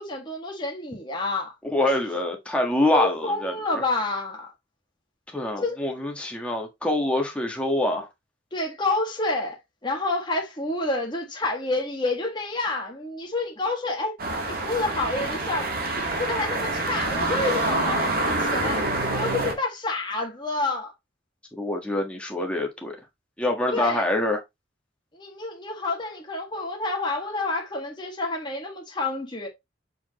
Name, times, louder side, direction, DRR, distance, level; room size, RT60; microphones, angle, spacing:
voice 1, 0.0-1.9 2.9-4.5 5.6-5.8 8.5-9.6 9.8-14.1 14.4-20.9 23.7-24.1 25.1-29.5, left 2 dB, 25° left, 1.6 m, -29 dB
voice 2, 1.7-3.8 5.3-8.1 21.5-23.0 23.4-24.4, left 1 dB, 5° left, 1.4 m, -25 dB
sound 1, 14.2-19.5, right 2 dB, 50° right, 1.7 m, -26 dB
7.1 x 4.6 x 3.0 m
head